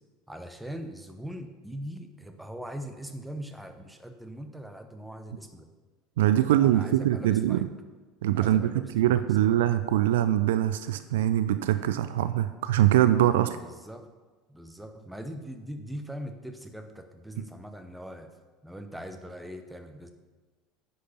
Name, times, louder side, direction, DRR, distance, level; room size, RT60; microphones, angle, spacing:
voice 1, 0.3-5.7 6.4-7.7 8.3-9.6 13.5-14.1 14.5-18.4 18.6-20.1, equal, 5° right, 6 dB, 1.0 m, -41 dB
voice 2, 6.2-7.7 8.2-13.6, right 12 dB, 65° right, 12 dB, 0.4 m, -23 dB
9.6 x 6.5 x 5.7 m, 1.3 s
figure-of-eight pair, 70°, 0 cm